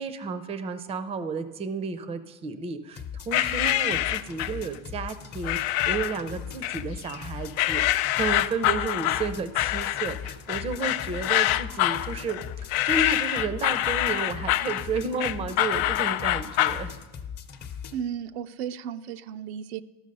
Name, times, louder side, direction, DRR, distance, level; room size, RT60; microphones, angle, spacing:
voice 1, 0.0-12.4 12.8-16.9, right 4 dB, 20° right, 12 dB, 0.5 m, -32 dB
sound 1, 2.9-17.9, left 7 dB, 35° left, 0.8 m, -39 dB
sound 2, 3.3-4.6 5.4-6.2 6.6-7.2 7.6-16.9, left 14 dB, 65° left, 0.5 m, -26 dB
voice 2, 17.9-19.8, right 8 dB, 85° right, 10 dB, 0.5 m, -34 dB
13.0 x 6.1 x 5.3 m, 1.2 s
supercardioid pair, 135°, 31 cm